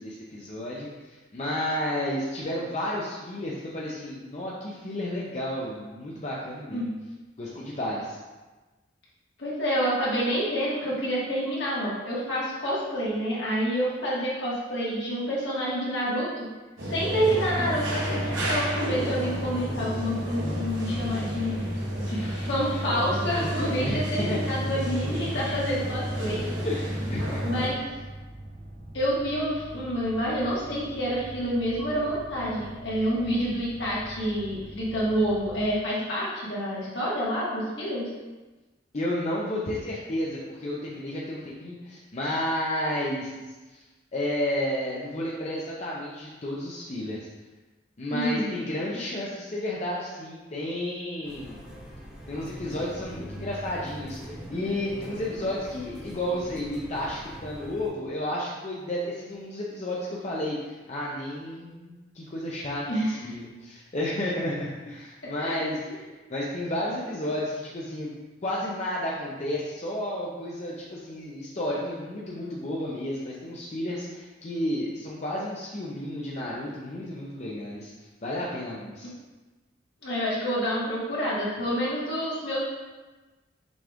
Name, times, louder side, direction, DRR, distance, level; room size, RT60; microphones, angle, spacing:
voice 1, 0.0-6.9 7.4-8.2 23.8-24.0 24.3-24.5 26.7-27.6 38.9-43.3 43.7-43.8 44.1-47.3 48.0-51.6 52.3-66.0 66.3-68.1 68.4-77.9 78.2-79.1, left 1 dB, 35° left, -5 dB, 0.5 m, -32 dB
voice 2, 9.4-16.3 16.8-21.6 22.1-26.4 27.4-27.8 28.9-38.1 48.1-48.6 62.9-63.2 65.4-65.6 79.0-79.1 80.0-82.6, equal, 70° left, -7 dB, 1.5 m, -28 dB
sound 1, 16.8-27.7, equal, 90° right, 1.1 m, -30 dB
sound 2, 27.4-35.8, right 1 dB, 30° right, 0.7 m, -44 dB
sound 3, 51.2-57.9, equal, 5° right, 0.9 m, -42 dB
6.1 x 2.4 x 3.5 m, 1.2 s
head